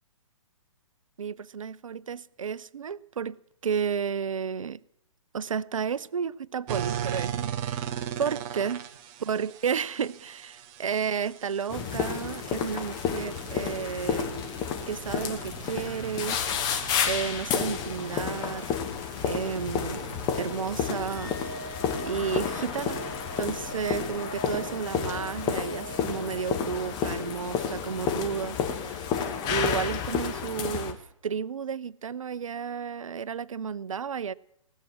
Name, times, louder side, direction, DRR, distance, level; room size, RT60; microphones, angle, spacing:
voice 1, 1.2-4.8 5.3-8.8 9.2-14.3 14.9-16.4 17.0-18.7 19.2-21.4 22.0-23.0 23.4-29.2 29.4-34.3, right 7 dB, 70° right, 0.5 m, -32 dB
sound 1, 6.7-24.2, right 9 dB, 25° right, 0.8 m, -40 dB
sound 2, 11.7-30.9, left 7 dB, 25° left, 1.2 m, -31 dB
sound 3, 21.0-27.6, right 2 dB, 45° left, 1.6 m, -43 dB
18.5 x 7.4 x 7.2 m
figure-of-eight pair, 125°, 18 cm